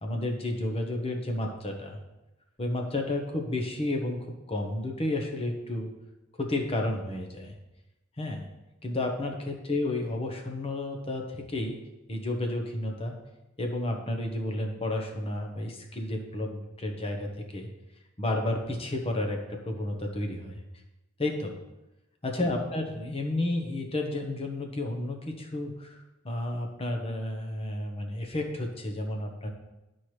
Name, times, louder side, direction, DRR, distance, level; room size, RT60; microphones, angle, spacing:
voice 1, 0.0-2.0 2.6-5.9 6.4-7.5 8.2-8.5 8.8-11.8 12.1-13.2 13.6-17.7 18.2-20.6 21.2-21.6 22.2-26.0 26.2-29.5, left 1 dB, 30° left, 2 dB, 1.0 m, -31 dB
12.0 x 4.4 x 3.2 m, 1.0 s
head